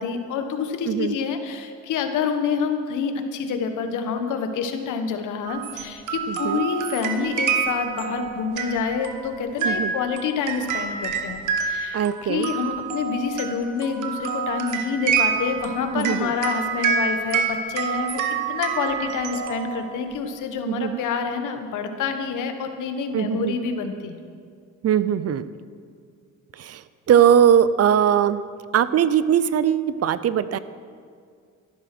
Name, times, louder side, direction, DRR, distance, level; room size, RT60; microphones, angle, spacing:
voice 1, 0.0-24.2, left 5 dB, 85° left, 7 dB, 1.5 m, -27 dB
voice 2, 0.9-1.2 6.3-6.6 9.6-9.9 11.9-12.5 15.9-16.3 20.7-21.0 23.1-23.6 24.8-25.5 26.6-26.8 27.1-28.4 28.7-30.6, right 9 dB, 55° right, 15 dB, 0.6 m, -20 dB
sound 1, 5.4-20.2, right 6 dB, 85° right, 1.4 m, -27 dB
13.5 x 12.0 x 6.1 m, 2.1 s
cardioid pair, 90°, 30 cm